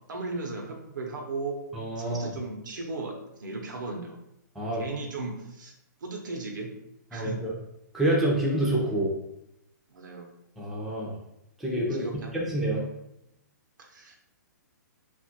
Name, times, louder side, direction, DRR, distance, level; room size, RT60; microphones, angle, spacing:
voice 1, 0.1-1.6 2.0-3.1 3.4-4.2 4.7-5.7 6.0-6.7 7.1-7.4 9.9-10.3 12.0-12.4 13.8-14.2, right 3 dB, 80° right, 1 dB, 0.8 m, -36 dB
voice 2, 1.7-2.3 4.6-4.8 7.1-7.5 7.9-9.1 10.6-11.2 11.6-12.1 12.3-12.9, right 1 dB, ahead, -6 dB, 0.5 m, -27 dB
3.0 x 2.4 x 2.8 m, 0.81 s
hypercardioid pair, 155°, 10 cm